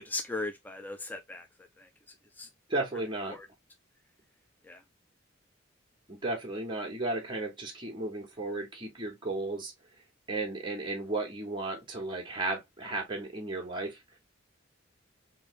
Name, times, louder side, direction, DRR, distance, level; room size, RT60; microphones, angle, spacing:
voice 1, 0.0-1.5 1.8-2.5 3.3-3.5 4.6-4.8, left 2 dB, 10° left, 0.4 m, -38 dB
voice 2, 2.7-3.4 6.1-9.7 10.3-14.0, right 2 dB, 25° right, 1.1 m, -34 dB
3.2 x 2.6 x 3.1 m
head